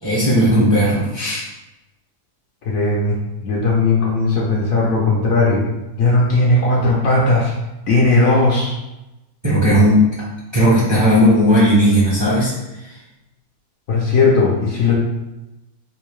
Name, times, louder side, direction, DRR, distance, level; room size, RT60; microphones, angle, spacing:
voice 1, 0.0-1.4 9.4-10.1 10.5-12.5, equal, 20° right, -8 dB, 0.7 m, -15 dB
voice 2, 2.7-3.2 3.4-5.6 6.0-7.5 7.9-8.7 13.9-14.9, left 3 dB, 65° left, -3 dB, 1.0 m, -16 dB
3.7 x 2.6 x 3.1 m, 0.98 s
omnidirectional pair, 1.8 m